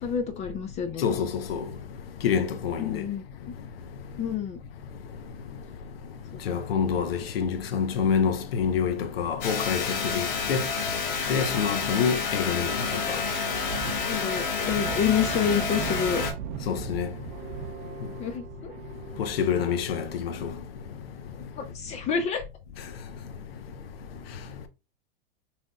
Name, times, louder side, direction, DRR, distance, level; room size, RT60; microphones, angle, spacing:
voice 1, 0.0-1.0 2.8-3.2 4.2-4.6 12.0-12.2 14.0-16.2 18.2-18.7 21.6-22.4, left 8 dB, 25° left, 0.4 m, -28 dB
voice 2, 1.0-1.6 2.2-3.0 6.5-10.6 11.3-12.7 13.1-13.2 16.7-17.1 19.2-20.5, left 7 dB, 80° left, 0.8 m, -27 dB
sound 1, 9.4-16.3, left 5 dB, 65° left, 1.5 m, -29 dB
sound 2, 12.6-20.3, right 9 dB, 45° right, 0.5 m, -38 dB
5.8 x 2.8 x 2.3 m
hypercardioid pair, 130°, 29 cm